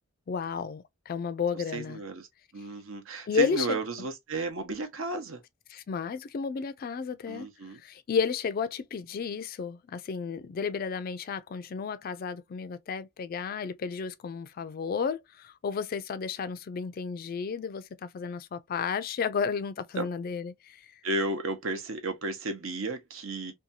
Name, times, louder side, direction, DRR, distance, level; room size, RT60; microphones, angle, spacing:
voice 1, 0.3-2.0 3.3-4.1 5.7-7.5 7.8-20.9, left 6 dB, 45° left, 0.3 m, -32 dB
voice 2, 1.7-2.3 2.5-5.4 7.3-7.8 20.0-20.1 21.0-23.5, right 2 dB, 75° right, 0.8 m, -33 dB
2.7 x 2.3 x 2.6 m
head